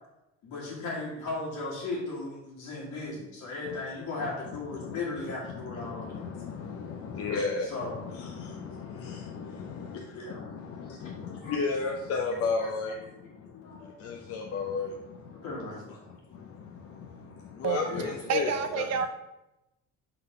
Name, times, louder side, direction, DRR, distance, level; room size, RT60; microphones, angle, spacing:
voice 1, 0.4-6.3 7.6-8.0 10.1-10.5 11.0-11.1 11.4-12.2 12.6-13.1 13.5-14.0 15.4-16.0 17.7-18.2, left 3 dB, 65° left, -7 dB, 1.9 m, -37 dB
voice 2, 5.4-15.4 16.1-18.9, left 4 dB, 50° left, 2 dB, 0.7 m, -35 dB
voice 3, 18.3-19.1, right 6 dB, 55° right, 8 dB, 0.7 m, -28 dB
5.6 x 4.0 x 4.4 m, 0.95 s
cardioid pair, 110°, 30 cm